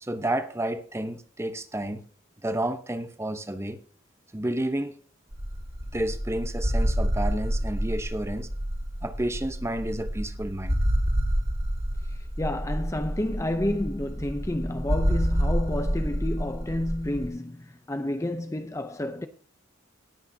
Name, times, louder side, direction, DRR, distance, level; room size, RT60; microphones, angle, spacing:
voice 1, 0.0-2.0 2.4-3.8 4.3-5.0 5.9-8.5 9.0-10.8, right 1 dB, 15° right, 0.9 m, -30 dB
sound 1, 5.3-17.3, equal, 45° right, 3.2 m, -28 dB
voice 2, 12.1-19.3, left 1 dB, 15° left, 0.6 m, -30 dB
19.5 x 8.5 x 2.8 m
head